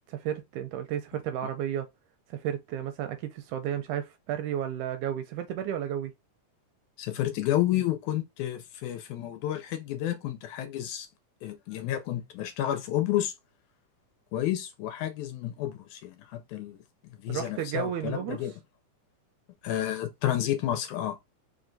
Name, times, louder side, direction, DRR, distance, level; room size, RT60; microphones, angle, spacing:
voice 1, 0.1-1.9 2.3-6.1 17.3-18.4, right 10 dB, 80° right, 1.8 m, -32 dB
voice 2, 7.0-11.1 11.4-13.3 14.3-16.8 17.2-18.5 19.6-21.2, left 12 dB, 80° left, 1.8 m, -30 dB
4.5 x 3.3 x 2.6 m
omnidirectional pair, 3.8 m